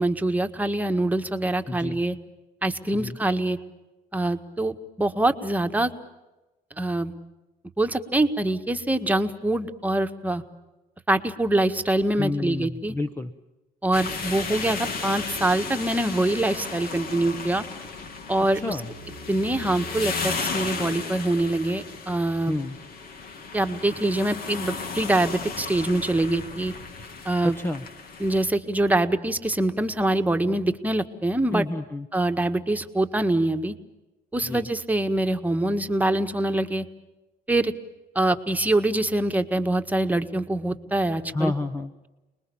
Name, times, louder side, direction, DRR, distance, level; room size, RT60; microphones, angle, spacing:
voice 1, 0.0-2.1 2.6-3.6 4.1-5.9 6.8-7.1 7.8-10.4 11.1-12.9 13.8-17.6 18.3-18.7 19.3-22.5 23.5-26.7 27.2-27.6 28.2-31.6 32.1-33.7 34.3-36.8 37.5-37.7 38.1-41.5, right 1 dB, 10° right, 6 dB, 1.7 m, -24 dB
voice 2, 1.7-2.0 2.9-3.2 12.2-13.3 18.5-18.9 22.5-22.8 27.4-27.9 31.5-32.1 34.4-34.7 41.3-41.9, left 2 dB, 15° left, 10 dB, 1.0 m, -29 dB
sound 1, 13.9-28.5, left 4 dB, 60° left, 3.0 m, -35 dB
29.5 x 21.0 x 7.2 m, 1.1 s
cardioid pair, 110°, 17 cm